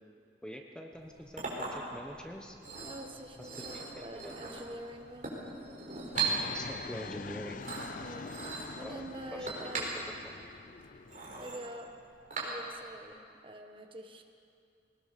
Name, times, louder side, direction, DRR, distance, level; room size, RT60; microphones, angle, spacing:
voice 1, 0.4-2.6 3.4-4.3 6.5-7.6 8.8-9.0 9.3-9.5 9.8-10.0, equal, 5° left, 2 dB, 1.1 m, -45 dB
Chink clink, 0.9-13.0, right 3 dB, 45° right, 4.6 m, -40 dB
voice 2, 2.8-5.4 8.0-8.3 8.8-10.2 11.4-11.9 12.4-14.2, right 1 dB, 30° right, 4 dB, 1.5 m, -46 dB
Fixed-wing aircraft airplane, 6.2-11.6, left 4 dB, 50° left, 0.5 m, -45 dB
21.0 x 19.5 x 6.8 m, 2.5 s
head